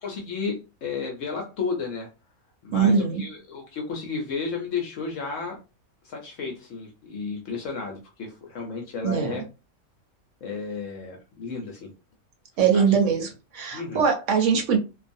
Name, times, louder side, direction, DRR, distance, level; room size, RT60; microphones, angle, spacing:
voice 1, 0.0-2.1 2.6-5.6 6.0-9.4 10.4-11.9 12.6-13.0 13.7-14.0, left 4 dB, 65° left, 0.9 m, -33 dB
voice 2, 2.7-3.3 9.0-9.4 12.6-14.8, right 6 dB, 65° right, 0.9 m, -22 dB
2.5 x 2.3 x 2.5 m
omnidirectional pair, 1.6 m